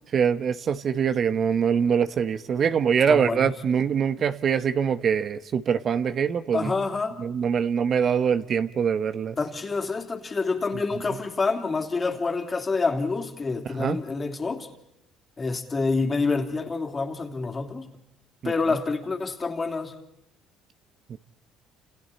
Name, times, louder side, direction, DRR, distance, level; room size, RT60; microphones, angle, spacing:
voice 1, 0.1-6.7 7.2-9.4 13.8-14.0 18.4-18.5 21.1-21.2, right 7 dB, 50° right, 1.0 m, -24 dB
voice 2, 3.1-3.5 6.5-7.2 9.4-14.7 15.4-17.9 18.4-19.9, left 4 dB, 30° left, 2.9 m, -27 dB
29.5 x 28.0 x 4.2 m
supercardioid pair, 85°, 0 cm